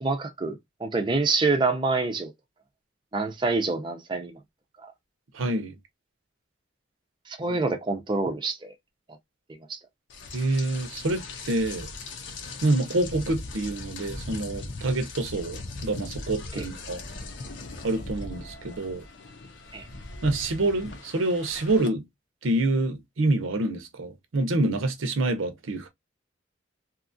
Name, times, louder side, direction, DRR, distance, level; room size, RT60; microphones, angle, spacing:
voice 1, 0.0-2.3 3.1-4.4 7.3-8.7 9.7-9.8 16.5-16.6 19.7-19.8, right 3 dB, 25° right, 0.5 m, -26 dB
voice 2, 5.3-5.8 7.5-7.6 10.3-11.9 12.6-17.0 17.8-19.0 20.2-22.0 22.4-25.9, right 2 dB, 90° right, 0.7 m, -27 dB
Rain, 10.1-21.9, left 3 dB, 65° left, 0.7 m, -39 dB
2.8 x 2.4 x 2.5 m
head